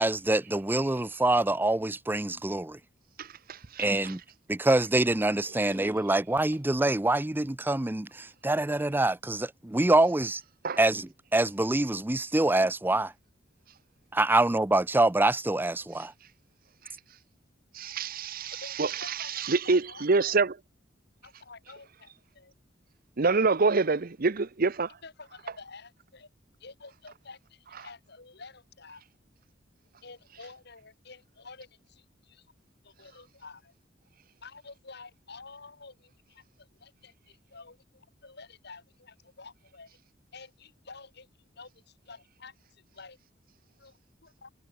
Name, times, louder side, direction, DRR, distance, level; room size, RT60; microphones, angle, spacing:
voice 1, 0.0-2.8 3.8-4.2 4.5-10.4 10.8-13.1 14.1-16.1, right 2 dB, 10° right, 0.5 m, -25 dB
voice 2, 3.2-4.1 10.6-10.8 17.7-20.5 23.2-24.9, right 4 dB, 50° right, 0.8 m, -27 dB
voice 3, 18.5-20.4 21.2-22.5 25.0-26.3 26.6-29.0 30.0-32.5 32.8-33.7 34.4-40.0 40.3-41.3 41.6-43.2 43.8-44.5, left 4 dB, 60° left, 3.7 m, -50 dB
head